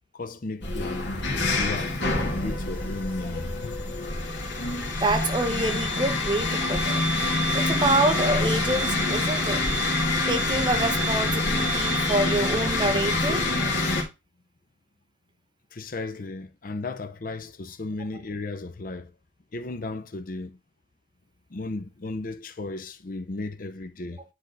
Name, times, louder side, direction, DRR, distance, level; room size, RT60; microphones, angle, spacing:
voice 1, 0.1-1.1 1.6-3.8 7.4-7.5 15.7-19.1 19.5-20.6 21.5-24.2, left 2 dB, 45° left, 0.6 m, -35 dB
sound 1, 0.6-14.0, left 2 dB, 65° left, 1.7 m, -26 dB
voice 2, 5.0-7.0 7.5-9.6 10.3-13.4, right 2 dB, 25° right, 0.8 m, -26 dB
9.6 x 3.6 x 3.9 m
head